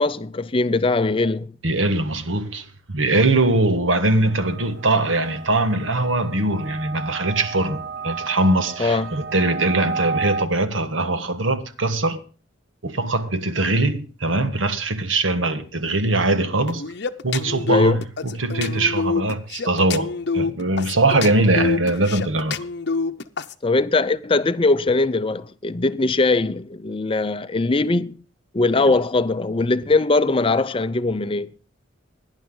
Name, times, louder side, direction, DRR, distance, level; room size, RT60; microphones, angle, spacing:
voice 1, 0.0-1.5 8.8-9.2 17.7-18.0 23.6-28.2 28.5-31.5, left 3 dB, 25° left, 0.5 m, -21 dB
voice 2, 1.6-2.7 2.9-12.2 12.8-16.8 17.2-22.6, right 2 dB, 75° right, 1.5 m, -21 dB
sound 1, 4.3-10.5, right 5 dB, 55° right, 0.7 m, -32 dB
sound 2, 16.7-23.5, left 4 dB, 55° left, 0.8 m, -26 dB
17.5 x 10.5 x 3.8 m
head